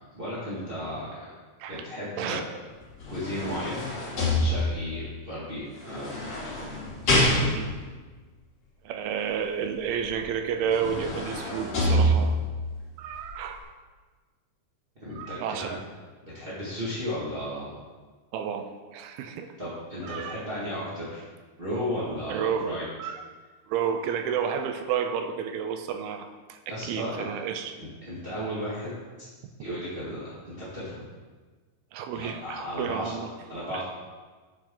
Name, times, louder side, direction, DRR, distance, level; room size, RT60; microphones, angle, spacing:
voice 1, 0.1-1.3 1.7-2.4 3.0-6.5 7.0-7.5 15.0-15.7 16.2-17.7 19.6-21.2 21.6-22.8 26.7-27.2 27.8-29.3 29.6-31.0 32.1-33.1 33.5-33.8, equal, 40° right, -10 dB, 0.7 m, -35 dB
sound 1, 2.8-5.0 5.9-7.9 10.1-10.2 10.6-12.6 13.1-13.3, equal, 40° left, 3.7 m, -26 dB
voice 2, 8.8-12.4 13.0-13.6 15.1-15.8 18.3-19.5 20.0-20.4 22.3-22.7 23.0-23.2 23.7-27.8 31.9-33.3 33.7-33.8, right 7 dB, 80° right, 7 dB, 2.4 m, -31 dB
9.4 x 7.1 x 3.9 m, 1.4 s
omnidirectional pair, 4.5 m